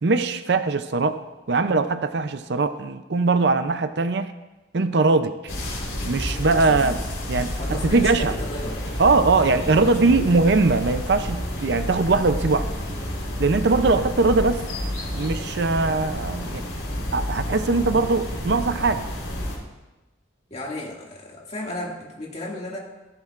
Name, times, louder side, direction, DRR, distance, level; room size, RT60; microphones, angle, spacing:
voice 1, 0.0-1.2 1.5-4.3 4.7-5.5 6.0-7.0 7.3-8.4 9.0-12.7 13.4-14.6 15.1-16.6 17.1-19.0, right 3 dB, 60° right, 10 dB, 0.5 m, -21 dB
sound 1, 5.5-19.6, left 1 dB, 75° left, 3.9 m, -30 dB
voice 2, 7.6-8.8 9.3-10.5 13.9-14.1 20.5-22.8, left 1 dB, 35° left, -3 dB, 2.2 m, -34 dB
16.0 x 14.0 x 2.5 m, 1.1 s
head